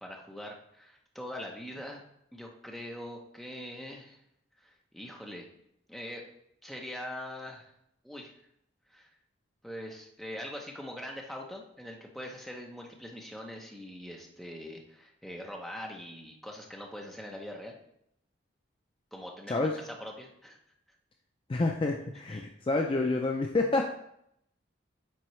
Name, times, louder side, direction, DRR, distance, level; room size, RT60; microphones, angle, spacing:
voice 1, 0.0-2.0 2.3-4.2 4.6-5.5 5.9-6.2 6.6-7.7 8.0-8.3 8.9-9.1 9.6-17.8 19.1-20.6 22.3-22.4, left 1 dB, ahead, -1 dB, 0.7 m, -42 dB
voice 2, 19.5-19.8 21.5-23.9, left 2 dB, 25° left, 2 dB, 0.4 m, -28 dB
9.1 x 3.8 x 3.1 m, 0.76 s
head